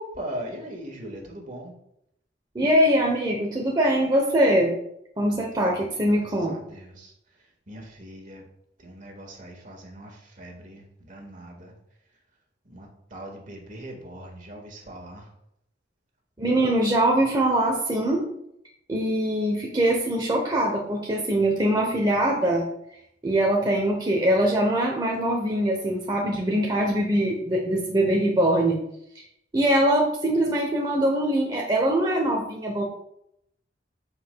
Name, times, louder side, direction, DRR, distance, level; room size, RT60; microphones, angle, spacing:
voice 1, 0.0-1.7 5.3-8.5 8.8-11.7 12.6-15.3 23.6-23.7, equal, 45° right, 1 dB, 1.8 m, -40 dB
voice 2, 2.5-4.7 5.2-6.6 16.4-18.2 18.9-22.7 23.2-28.8 29.1-29.2 29.5-32.8, right 1 dB, 25° right, -1 dB, 0.9 m, -22 dB
13.5 x 4.9 x 2.3 m, 0.79 s
head